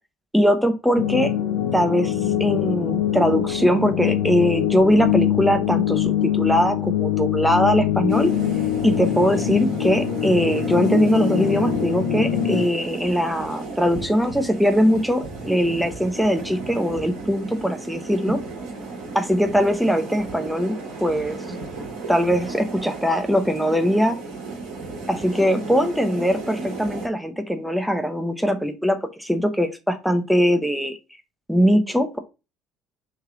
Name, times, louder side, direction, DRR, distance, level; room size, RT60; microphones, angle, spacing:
voice 1, 0.3-1.3 1.7-2.1 2.4-8.3 8.8-18.4 19.1-21.4 22.1-24.2 25.1-31.0 31.5-32.2, equal, ahead, 7 dB, 0.7 m, -21 dB
sound 1, 1.0-12.7, left 10 dB, 60° left, 0.6 m, -23 dB
sound 2, 8.1-27.1, right 3 dB, 65° right, 1.1 m, -34 dB
3.2 x 2.8 x 3.6 m, 0.28 s
figure-of-eight pair, 60°, 0 cm